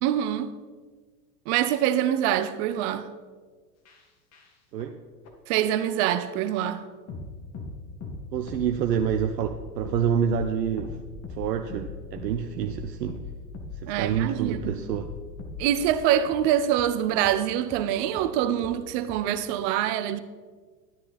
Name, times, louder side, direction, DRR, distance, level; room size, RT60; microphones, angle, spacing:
voice 1, 0.0-0.5 1.5-3.1 5.5-6.8 13.9-14.8 15.6-20.2, right 11 dB, 45° right, 0.8 m, -25 dB
sound 1, 3.8-4.0 4.3-4.5 4.8-4.9 5.2-5.3 6.2-6.3 6.6-6.7 7.1-7.3 7.5-7.7 8.0-8.2 8.5-16.0 16.3-16.4 16.8-16.9 17.2-17.3 17.7-17.8 18.2-18.3 18.6-18.7 19.1-19.2, left 4 dB, 30° left, 1.8 m, -39 dB
voice 2, 8.3-11.0 11.4-13.2 13.8-15.1, right 8 dB, 75° right, 0.8 m, -27 dB
12.0 x 9.7 x 4.1 m
hypercardioid pair, 90°, 50 cm